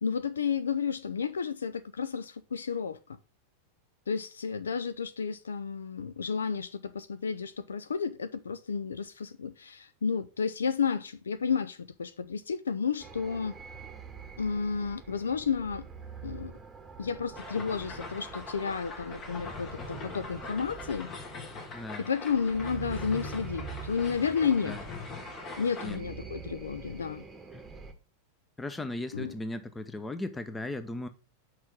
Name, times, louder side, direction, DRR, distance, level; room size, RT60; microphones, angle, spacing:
voice 1, 0.0-3.0 4.1-13.6 14.4-15.9 16.2-16.5 17.0-21.1 22.0-24.8 25.6-27.2 29.1-29.3, left 6 dB, 70° left, 0.5 m, -32 dB
sound 1, 13.0-27.9, right 5 dB, 15° right, 1.2 m, -45 dB
sound 2, 17.4-26.0, left 4 dB, 30° left, 1.5 m, -43 dB
voice 2, 21.7-22.1 24.6-24.8 25.8-26.0 27.5-27.7 28.6-31.1, left 2 dB, 10° left, 0.8 m, -37 dB
6.2 x 4.9 x 5.3 m
figure-of-eight pair, 90°, 0 cm